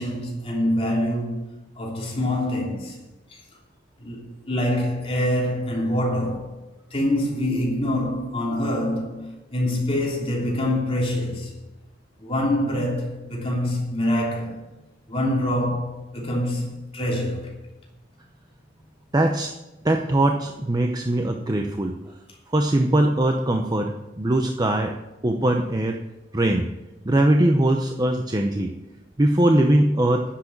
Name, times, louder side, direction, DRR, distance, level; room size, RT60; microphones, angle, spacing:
voice 1, 0.0-1.4 1.8-3.0 4.0-6.5 6.9-11.5 12.2-14.6 15.1-17.5, left 1 dB, 30° left, 3.2 m, -25 dB
voice 2, 19.1-19.6 19.8-22.0 22.5-24.9 25.2-26.0 26.3-26.7 27.0-28.7 29.2-30.2, right 1 dB, 20° right, 0.7 m, -21 dB
9.9 x 7.5 x 8.7 m
head